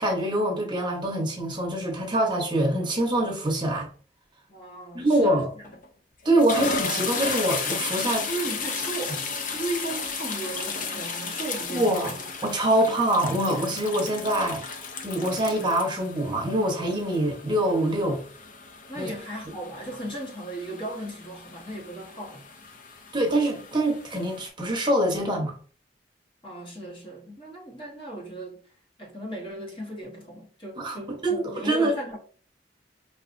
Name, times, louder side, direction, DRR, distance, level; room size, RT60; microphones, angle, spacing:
voice 1, 0.0-3.9 4.9-5.5 6.2-8.3 11.7-12.1 12.4-14.6 15.0-18.2 19.0-19.1 23.1-25.5 30.8-31.9, right 1 dB, 25° right, 0.9 m, -24 dB
voice 2, 4.5-5.6 8.3-9.3 9.5-12.2 18.9-22.4 26.4-28.6 29.0-32.2, right 2 dB, 30° left, 1.1 m, -36 dB
sound 1, 5.6-5.9 6.2-24.5, left 4 dB, 50° left, 0.6 m, -34 dB
5.4 x 3.0 x 2.5 m
head